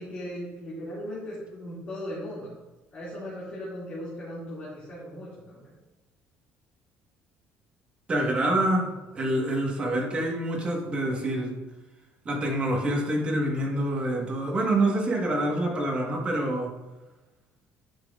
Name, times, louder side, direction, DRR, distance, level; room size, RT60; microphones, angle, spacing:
voice 1, 0.0-2.5 2.9-5.7, equal, 30° left, -9 dB, 2.3 m, -38 dB
voice 2, 8.1-8.9 9.1-11.5 12.2-16.7, right 1 dB, 25° right, -1 dB, 1.4 m, -26 dB
10.5 x 6.0 x 2.5 m, 1.1 s
cardioid pair, 170°, 4 cm